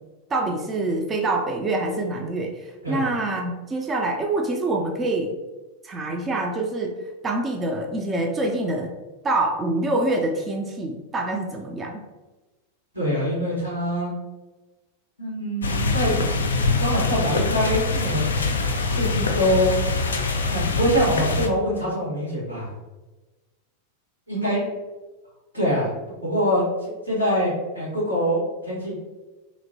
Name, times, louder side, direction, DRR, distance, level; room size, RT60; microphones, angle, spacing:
voice 1, 0.3-5.3 5.8-6.9 7.2-8.9 9.2-12.0, right 2 dB, 20° right, 2 dB, 0.4 m, -25 dB
voice 2, 12.9-14.1 15.2-16.1 16.8-18.5 18.8-19.8 20.5-22.7 24.3-24.7 25.5-25.9 26.2-29.0, equal, 90° right, -6 dB, 1.5 m, -24 dB
sound 1, 15.6-21.5, left 3 dB, 70° left, 0.3 m, -24 dB
3.0 x 2.8 x 2.6 m, 1.1 s
figure-of-eight pair, 90°, 0 cm